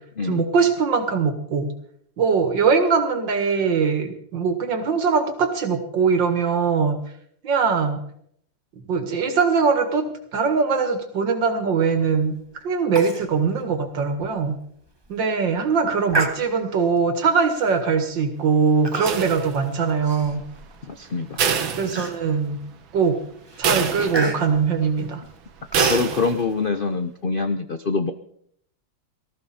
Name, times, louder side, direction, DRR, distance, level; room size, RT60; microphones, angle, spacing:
voice 1, 0.2-1.7 2.2-7.0 7.4-8.0 8.9-10.0 10.3-12.3 12.6-14.6 15.1-20.4 21.8-22.6 22.9-23.2 23.6-25.2, right 5 dB, 65° right, 7 dB, 2.5 m, -21 dB
Human voice, 13.0-13.3 13.6-13.7 14.2-14.3 14.9-15.1 16.1-16.8 17.6-17.8 18.8-19.5 19.8-20.9 21.3-21.4 21.9-22.5 23.0-23.2 23.5-26.1, right 2 dB, 15° right, 1.1 m, -29 dB
sound 1, 19.1-19.9 21.4-22.5 22.9-23.0 23.6-24.5 25.7-26.5, right 7 dB, 80° right, 2.0 m, -25 dB
voice 2, 20.9-21.4 23.9-24.1 25.8-28.1, left 4 dB, 85° left, 9 dB, 0.4 m, -25 dB
19.0 x 14.0 x 4.3 m, 0.67 s
omnidirectional pair, 2.2 m